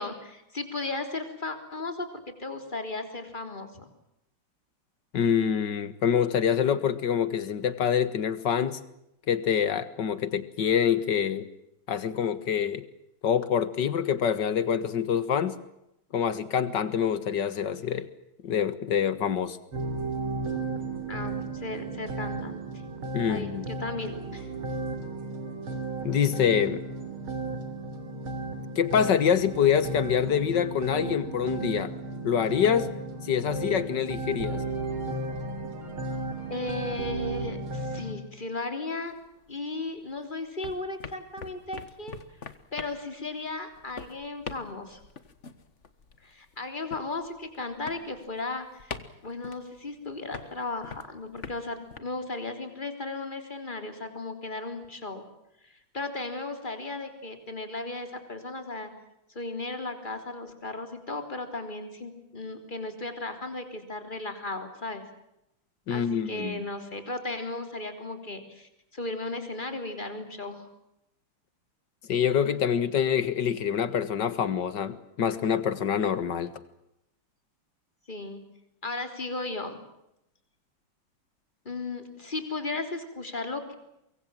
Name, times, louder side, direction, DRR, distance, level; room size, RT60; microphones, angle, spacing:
voice 1, 0.0-3.9 21.1-22.6 23.3-24.5 36.5-39.1 39.5-42.2 42.7-45.0 46.2-48.9 49.2-55.3 55.6-58.9 59.3-65.0 65.9-70.7 78.1-78.4 78.8-79.8 81.7-83.7, left 2 dB, 20° left, 7 dB, 3.7 m, -35 dB
voice 2, 5.1-8.8 9.3-11.4 11.9-12.9 13.2-15.6 16.1-18.1 18.4-19.6 23.1-23.6 26.0-26.8 28.8-31.9 32.2-32.9 33.2-34.6 65.9-66.6 72.1-76.5, left 8 dB, 60° left, 14 dB, 2.1 m, -26 dB
sound 1, 19.7-38.1, right 3 dB, 90° right, 4.1 m, -34 dB
sound 2, 39.1-40.2 40.4-52.0, left 5 dB, 40° left, 1.6 m, -44 dB
24.5 x 23.5 x 7.6 m, 0.84 s
omnidirectional pair, 2.3 m